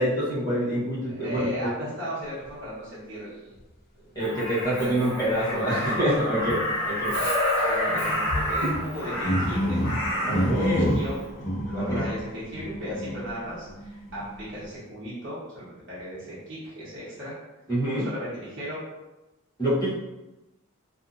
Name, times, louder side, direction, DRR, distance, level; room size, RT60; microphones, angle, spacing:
voice 1, 0.0-1.7 4.1-7.2 10.3-11.0 11.8-12.1 17.7-18.1 19.6-19.9, equal, 20° left, -10 dB, 1.0 m, -26 dB
voice 2, 1.1-3.5 4.4-5.8 7.5-9.8 10.3-11.3 11.7-17.3 18.0-18.8, equal, 55° right, -10 dB, 1.1 m, -36 dB
sound 1, 3.6-3.7 4.6-4.7 6.1-6.2 7.1-7.3 8.0-8.3 8.9-13.4 13.7-14.4, equal, 40° left, 0.6 m, -29 dB
Crow, 4.2-10.5 11.9-12.1, left 1 dB, 85° left, 1.0 m, -28 dB
2.6 x 2.5 x 2.5 m, 1.0 s
head